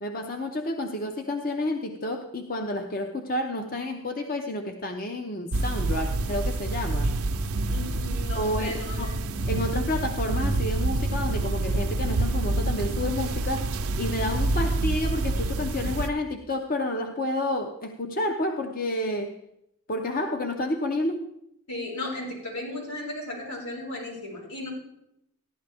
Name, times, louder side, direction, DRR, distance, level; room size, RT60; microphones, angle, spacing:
voice 1, 0.0-7.2 8.3-9.1 9.5-13.7 14.0-19.4 19.9-21.3, left 1 dB, 40° left, 5 dB, 0.6 m, -30 dB
sound 1, 5.5-16.1, right 2 dB, 85° right, 0.7 m, -27 dB
voice 2, 7.7-9.2 21.7-24.7, left 2 dB, 90° left, -4 dB, 6.1 m, -35 dB
15.0 x 11.5 x 3.4 m, 0.79 s
head